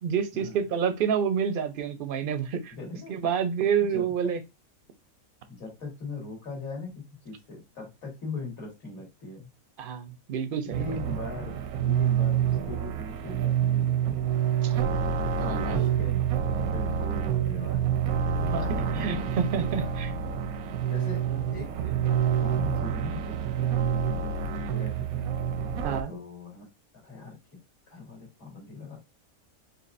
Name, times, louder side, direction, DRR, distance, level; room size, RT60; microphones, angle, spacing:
voice 1, 0.0-2.7 3.1-4.4 9.8-10.8 14.6-14.8 15.4-15.9 18.4-20.4 21.3-21.4 25.8-26.1, right 7 dB, 55° right, 9 dB, 0.6 m, -29 dB
voice 2, 2.7-3.3 3.9-4.3 5.5-6.9 7.2-9.5 10.6-14.0 15.4-18.0 18.4-19.9 20.9-25.3 26.1-26.6 27.0-27.4 27.9-29.0, left 3 dB, 65° left, -2 dB, 2.3 m, -40 dB
sound 1, 10.7-26.0, right 8 dB, 85° right, 1.1 m, -27 dB
4.5 x 2.7 x 2.5 m, 0.26 s
omnidirectional pair, 1.5 m